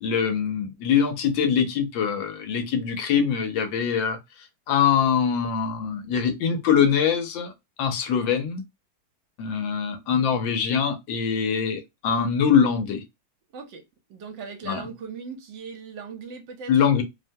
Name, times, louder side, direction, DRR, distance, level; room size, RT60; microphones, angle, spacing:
voice 1, 0.0-4.2 4.7-7.5 7.8-8.6 9.4-13.0 14.6-14.9 16.7-17.0, left 7 dB, 80° left, 1.4 m, -23 dB
voice 2, 14.1-16.7, right 5 dB, 75° right, 1.4 m, -38 dB
3.4 x 2.1 x 2.6 m
omnidirectional pair, 2.1 m